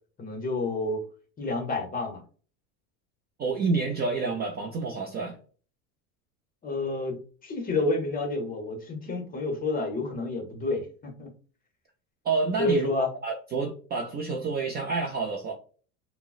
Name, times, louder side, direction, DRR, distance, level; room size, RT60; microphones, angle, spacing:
voice 1, 0.2-1.0 1.4-2.2 6.6-7.2 7.4-11.3 12.6-13.1, left 2 dB, 20° left, 0.7 m, -29 dB
voice 2, 3.4-5.4 12.2-15.5, right 4 dB, 25° right, 0.4 m, -29 dB
3.6 x 2.0 x 2.3 m
supercardioid pair, 115°, 41 cm